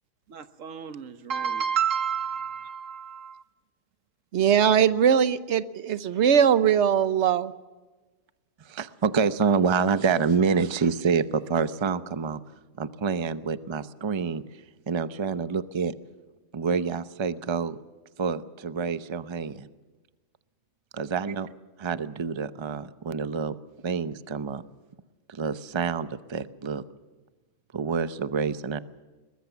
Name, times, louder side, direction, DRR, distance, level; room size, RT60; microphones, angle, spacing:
voice 1, 0.3-3.4, right 7 dB, 85° right, 1.5 m, -30 dB
voice 2, 4.3-7.5, right 8 dB, 65° right, 1.1 m, -21 dB
voice 3, 8.7-12.4 12.8-14.4 14.9-15.9 16.5-17.8 18.2-19.7 20.9-21.5 21.8-23.6 23.8-24.6 25.3-26.8 27.7-28.8, right 5 dB, 30° right, 0.6 m, -27 dB
22.0 x 20.0 x 7.1 m
omnidirectional pair, 1.3 m